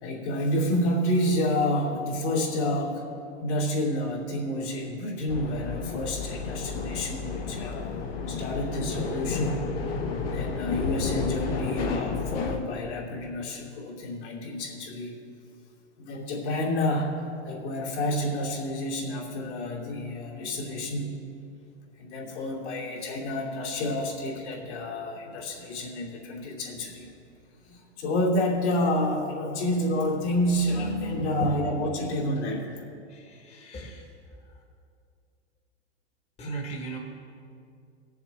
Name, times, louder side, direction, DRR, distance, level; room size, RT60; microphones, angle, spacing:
voice 1, 0.0-3.1 3.4-7.9 8.3-9.6 10.2-15.1 16.0-17.1 17.4-21.1 22.0-27.1 27.6-32.8, left 1 dB, 75° left, -4 dB, 2.9 m, -29 dB
sound 1, 5.3-12.6, left 4 dB, 55° left, 1.5 m, -31 dB
voice 2, 31.2-31.5 33.1-34.0 36.4-37.0, right 2 dB, 20° left, 0 dB, 1.3 m, -37 dB
19.0 x 7.1 x 3.4 m, 2.5 s
hypercardioid pair, 115°, 35 cm